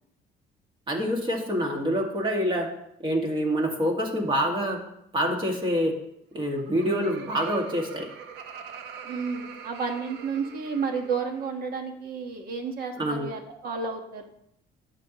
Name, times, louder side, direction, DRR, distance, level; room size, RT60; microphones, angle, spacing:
voice 1, 0.9-2.7 3.0-4.8 5.1-5.9 6.3-8.1 13.0-13.3, equal, 30° right, 1 dB, 2.0 m, -26 dB
Laughter, 6.3-11.5, right 7 dB, 90° right, 0.8 m, -43 dB
voice 2, 9.0-14.3, right 5 dB, 60° right, 5 dB, 1.5 m, -31 dB
11.5 x 7.5 x 3.0 m, 0.77 s
cardioid pair, 110°, 17 cm